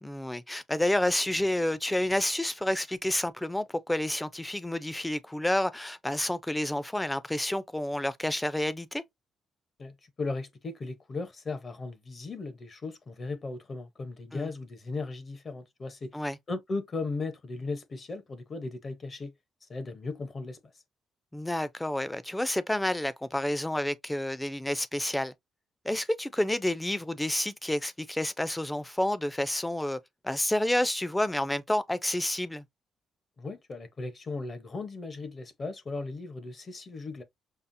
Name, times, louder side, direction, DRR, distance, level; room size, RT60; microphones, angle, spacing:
voice 1, 0.0-9.0 14.3-14.5 16.1-16.4 21.3-25.3 25.8-32.6, left 1 dB, 10° left, 0.5 m, -29 dB
voice 2, 9.8-16.1 16.5-19.3 19.7-20.6 33.4-37.2, left 3 dB, 40° left, 0.8 m, -37 dB
5.5 x 2.0 x 2.6 m
cardioid pair, 90°, 0 cm